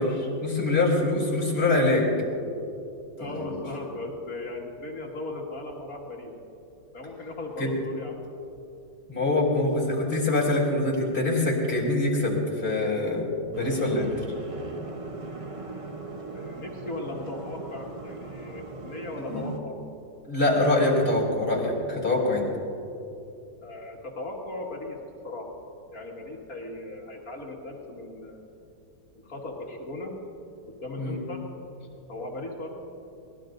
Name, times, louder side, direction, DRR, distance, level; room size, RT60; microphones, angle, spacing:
voice 1, 0.0-2.1 3.2-3.5 7.6-7.7 9.1-14.1 19.3-19.4 20.2-22.5 31.0-31.2, left 2 dB, 35° left, -4 dB, 3.7 m, -24 dB
voice 2, 3.2-6.3 6.9-8.2 16.3-19.8 23.6-25.5 25.9-28.4 29.1-30.1 30.7-31.4 32.1-32.7, left 2 dB, 50° left, -2 dB, 2.4 m, -37 dB
sound 1, 13.5-19.6, right 3 dB, 35° right, 0.5 m, -39 dB
23.0 x 19.0 x 2.6 m, 2.7 s
omnidirectional pair, 1.9 m